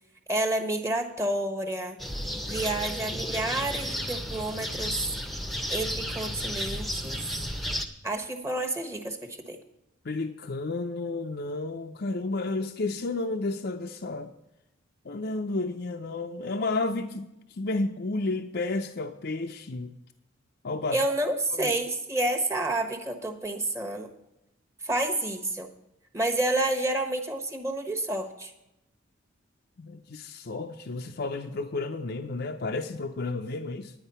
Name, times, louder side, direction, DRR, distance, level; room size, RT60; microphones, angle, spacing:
voice 1, 0.3-2.0 2.5-5.1 5.7-7.3 8.0-9.2 9.5-9.6 20.9-24.1 24.8-25.7 26.1-28.5, right 1 dB, 15° right, 4 dB, 1.1 m, -29 dB
sound 1, 2.0-7.9, equal, ahead, 0.8 m, -33 dB
voice 2, 10.0-14.3 15.1-17.2 17.6-19.9 20.6-21.0 21.5-21.7 29.8-33.9, left 3 dB, 55° left, 5 dB, 0.6 m, -31 dB
10.0 x 9.8 x 5.6 m, 0.85 s
head